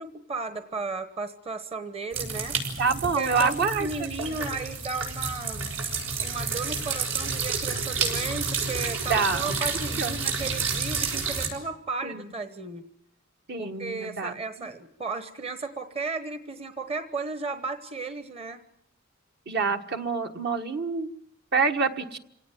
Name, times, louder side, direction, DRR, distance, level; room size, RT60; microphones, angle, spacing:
voice 1, 0.0-2.6 3.2-5.6 6.2-12.8 13.6-18.6, right 4 dB, 30° right, 10 dB, 1.1 m, -34 dB
sound 1, 2.1-11.5, right 4 dB, 75° right, 6.4 m, -30 dB
voice 2, 2.8-3.9 5.5-5.8 9.1-9.5 10.0-10.5 12.0-12.2 13.5-14.7 19.5-21.1 21.5-22.2, right 4 dB, 55° right, 6 dB, 1.5 m, -27 dB
27.0 x 18.0 x 9.2 m, 0.77 s
head